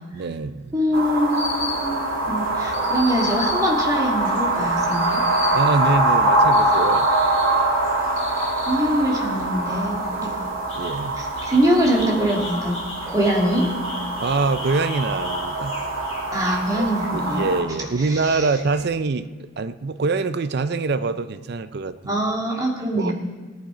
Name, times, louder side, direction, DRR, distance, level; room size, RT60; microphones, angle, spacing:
voice 1, 0.1-0.8 5.5-7.1 10.7-11.2 14.2-15.7 16.8-19.3 19.6-22.2 22.9-23.1, right 3 dB, 50° right, 13 dB, 0.5 m, -24 dB
voice 2, 0.7-5.2 8.7-10.5 11.2-12.8 13.1-13.7 16.3-17.5 18.0-18.5 22.1-23.1, equal, 15° right, -2 dB, 2.2 m, -23 dB
sound 1, 0.9-17.6, right 2 dB, 75° right, 2.3 m, -23 dB
sound 2, 1.3-18.9, left 3 dB, 30° left, 5.7 m, -38 dB
18.0 x 10.5 x 4.9 m, 1.4 s
head